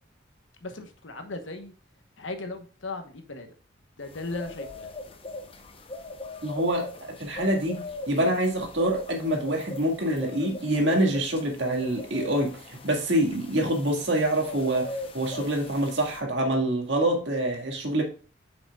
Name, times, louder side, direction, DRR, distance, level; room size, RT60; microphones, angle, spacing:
voice 1, 0.6-1.7 2.2-3.5 4.0-4.9, left 2 dB, 70° left, 7 dB, 1.1 m, -37 dB
sound 1, 4.1-16.2, left 2 dB, 30° left, 0.7 m, -40 dB
voice 2, 6.4-18.0, right 1 dB, 60° right, 1 dB, 1.9 m, -26 dB
7.7 x 5.9 x 2.3 m, 0.38 s
head